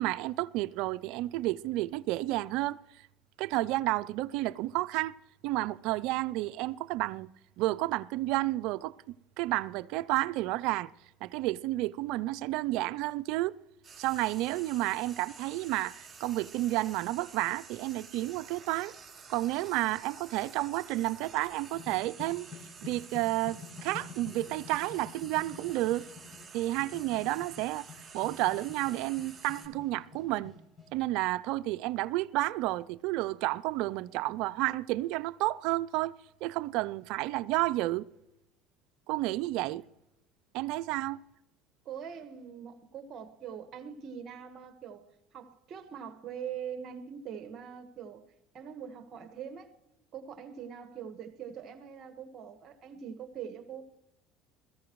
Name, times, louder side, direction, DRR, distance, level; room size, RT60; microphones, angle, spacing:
voice 1, 0.0-2.8 3.4-5.1 5.4-7.3 7.6-9.0 9.4-10.9 11.2-13.5 14.0-18.9 19.3-22.5 22.8-26.1 26.5-27.9 28.1-30.5 30.9-36.1 36.4-38.1 39.1-39.8 40.5-41.2, right 17 dB, 70° right, 0.4 m, -31 dB
Frying (food), 13.8-29.7, right 5 dB, 25° right, 2.9 m, -50 dB
sound 1, 21.7-30.9, left 5 dB, 20° left, 7.3 m, -49 dB
voice 2, 41.8-45.0 45.3-48.2 48.5-49.7 50.1-53.8, right 8 dB, 50° right, 1.5 m, -43 dB
21.5 x 14.5 x 3.1 m
supercardioid pair, 90°, 0 cm